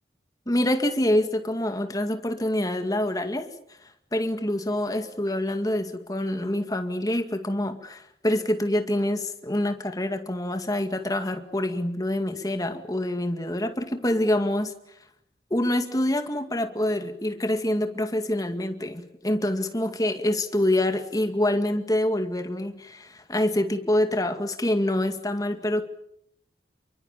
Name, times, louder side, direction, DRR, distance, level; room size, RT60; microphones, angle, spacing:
voice 1, 0.5-3.5 4.1-14.7 15.5-25.8, left 1 dB, 20° left, 8 dB, 2.1 m, -26 dB
29.0 x 24.0 x 7.2 m, 0.72 s
head